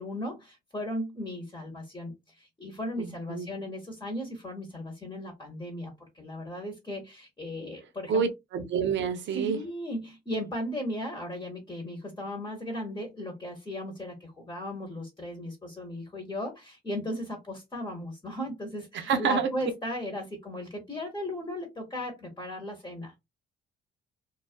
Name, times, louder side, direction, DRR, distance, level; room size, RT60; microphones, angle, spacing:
voice 1, 0.0-8.3 9.3-23.2, left 1 dB, 20° left, 1.0 m, -36 dB
voice 2, 3.0-3.5 8.1-9.6 18.9-19.5, right 6 dB, 70° right, 0.7 m, -28 dB
2.3 x 2.3 x 2.4 m
cardioid pair, 90°, 20 cm